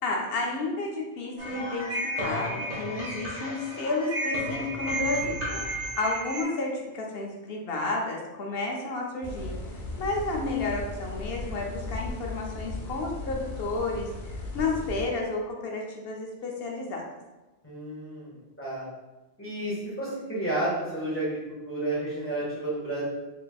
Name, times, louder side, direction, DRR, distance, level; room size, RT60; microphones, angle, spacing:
voice 1, 0.0-5.4 6.0-9.6 10.0-17.1, left 3 dB, 65° left, 0 dB, 0.9 m, -31 dB
sound 1, 1.4-6.4, right 1 dB, 80° right, 1.6 m, -32 dB
sound 2, 9.2-15.1, left 2 dB, 90° left, 1.1 m, -37 dB
voice 2, 17.6-18.8 19.4-23.0, right 1 dB, 10° left, -8 dB, 1.5 m, -31 dB
4.3 x 3.1 x 2.3 m, 1.1 s
omnidirectional pair, 1.2 m